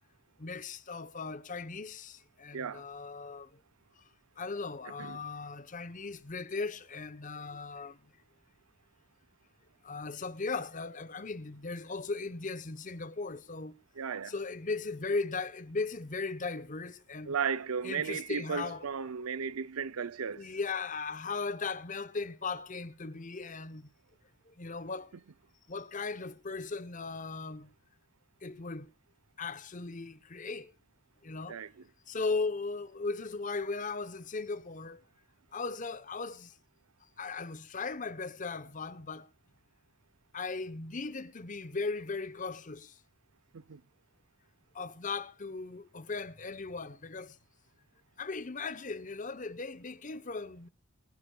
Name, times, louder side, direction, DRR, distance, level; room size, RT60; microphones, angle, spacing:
voice 1, 0.4-3.5 4.4-8.0 9.8-13.8 14.2-17.4 17.8-18.9 20.3-23.9 24.6-25.1 25.7-27.7 28.4-28.9 29.4-30.7 31.2-31.6 32.1-35.0 35.5-36.5 37.2-39.3 40.3-42.9 44.7-47.3 48.2-50.7, left 4 dB, 35° left, 0.9 m, -37 dB
voice 2, 2.5-2.8 5.0-5.2 14.0-14.3 17.3-20.5 31.5-31.7 43.5-43.8, right 6 dB, 85° right, 0.6 m, -35 dB
23.5 x 10.0 x 2.3 m
head